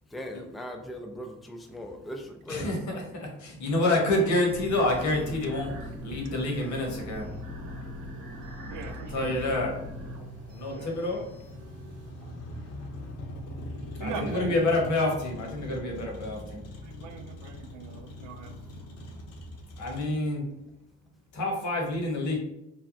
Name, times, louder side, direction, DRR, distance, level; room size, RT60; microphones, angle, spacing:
voice 1, 0.1-3.1, left 1 dB, ahead, 3 dB, 0.3 m, -39 dB
voice 2, 2.5-2.8 3.1-7.3 9.1-9.8 10.5-11.2 14.0-16.7 19.8-20.5 21.3-22.4, left 2 dB, 70° left, 0 dB, 1.1 m, -28 dB
sound 1, 4.5-12.1, left 1 dB, 55° right, 0.8 m, -41 dB
Motor vehicle (road), 6.0-20.0, left 1 dB, 55° left, 0.7 m, -43 dB
voice 3, 8.7-9.6 10.3-11.0 12.2-12.8 13.6-14.6 16.8-18.5, right 5 dB, 85° right, 7 dB, 0.5 m, -42 dB
3.3 x 2.1 x 2.5 m, 0.85 s
cardioid pair, 90°, 30 cm